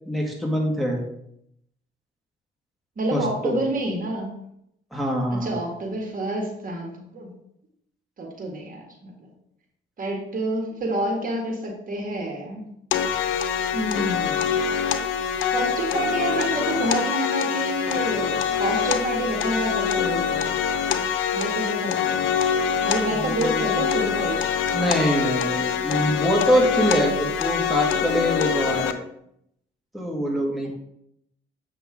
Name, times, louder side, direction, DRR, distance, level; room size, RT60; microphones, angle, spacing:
voice 1, 0.1-1.0 3.1-3.6 4.9-5.6 23.1-23.6 24.7-29.0 29.9-30.7, equal, ahead, -2 dB, 1.8 m, -24 dB
voice 2, 3.0-4.3 5.3-6.9 7.1-7.3 8.2-9.3 10.0-12.6 13.7-14.6 15.5-20.6 21.3-22.3 22.8-24.6, right 2 dB, 45° right, 1 dB, 2.0 m, -28 dB
sound 1, 12.9-28.9, left 7 dB, 85° left, 0.7 m, -25 dB
7.8 x 5.9 x 3.7 m, 0.75 s
cardioid pair, 90°, 20 cm